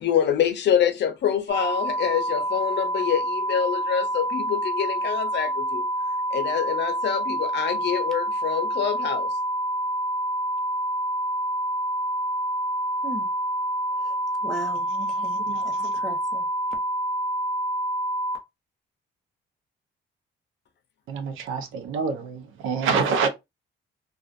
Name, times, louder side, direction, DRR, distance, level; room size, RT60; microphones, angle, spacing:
voice 1, 0.0-5.9 6.3-9.3, left 9 dB, 60° left, 0.6 m, -26 dB
sound 1, 1.5-18.4, right 1 dB, 65° right, 0.9 m, -27 dB
voice 2, 14.4-16.5, right 1 dB, ahead, 0.9 m, -37 dB
voice 3, 15.1-15.9 21.1-23.3, right 5 dB, 85° right, 0.6 m, -27 dB
2.4 x 2.4 x 2.5 m
cardioid pair, 90°, 20 cm